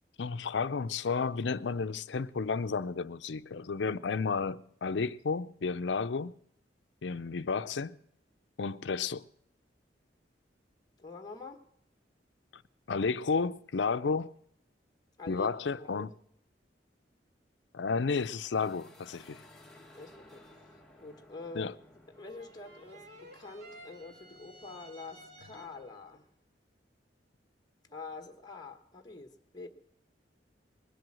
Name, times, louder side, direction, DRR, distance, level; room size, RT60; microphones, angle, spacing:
voice 1, 0.2-6.4 7.0-8.0 8.6-9.2 12.5-12.6 12.9-14.3 15.3-16.1 17.7-19.4 21.5-21.7, left 4 dB, 75° left, 0.5 m, -32 dB
voice 2, 11.0-11.6 15.2-15.5 15.7-16.1 20.0-20.7 21.0-21.8 22.2-26.3 27.9-29.7, left 3 dB, 25° left, 1.3 m, -46 dB
sound 1, 18.2-25.9, left 1 dB, 5° left, 1.7 m, -59 dB
sound 2, 22.1-26.0, right 1 dB, 65° right, 2.7 m, -54 dB
20.5 x 7.8 x 7.6 m
head